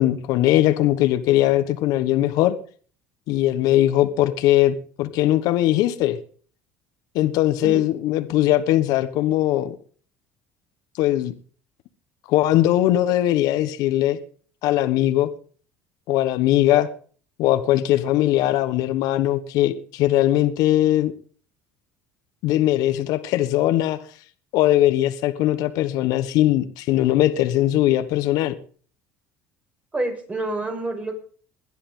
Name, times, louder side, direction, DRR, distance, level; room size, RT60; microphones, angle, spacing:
voice 1, 0.0-2.6 3.3-6.2 7.1-9.7 11.0-11.3 12.3-14.2 14.6-15.3 16.1-16.9 17.4-21.1 22.4-24.0 24.5-28.5, left 14 dB, 70° left, 1.3 m, -20 dB
voice 2, 29.9-31.2, right 2 dB, 20° right, 5.9 m, -27 dB
21.0 x 11.0 x 3.8 m
supercardioid pair, 100°, 7 cm